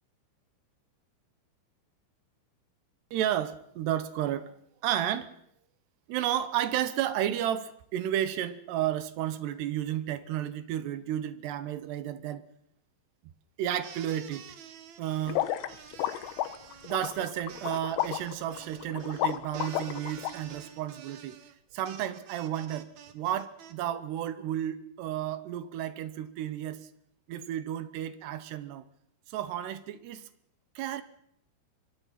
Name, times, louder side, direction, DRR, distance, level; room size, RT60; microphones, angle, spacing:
voice 1, 3.1-4.5 4.8-5.3 6.1-12.5 13.6-14.4 15.0-15.4 16.8-21.4 21.7-26.9 27.3-28.8 29.3-30.3 30.8-31.0, right 11 dB, 70° right, 14 dB, 2.7 m, -32 dB
sound 1, 13.8-23.7, right 8 dB, 90° right, 1.6 m, -49 dB
sound 2, 15.3-20.3, left 13 dB, 75° left, 3.2 m, -32 dB
24.5 x 23.5 x 5.8 m, 0.71 s
omnidirectional pair, 5.8 m